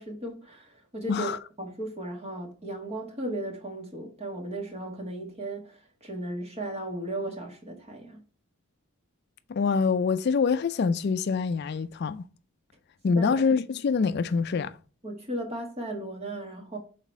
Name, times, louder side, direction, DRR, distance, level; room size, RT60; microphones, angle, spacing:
voice 1, 0.0-8.2 13.2-13.4 15.0-16.8, right 1 dB, 30° right, 1.6 m, -36 dB
voice 2, 9.5-12.2 13.0-14.7, left 5 dB, 50° left, 0.3 m, -25 dB
5.7 x 4.0 x 4.5 m
head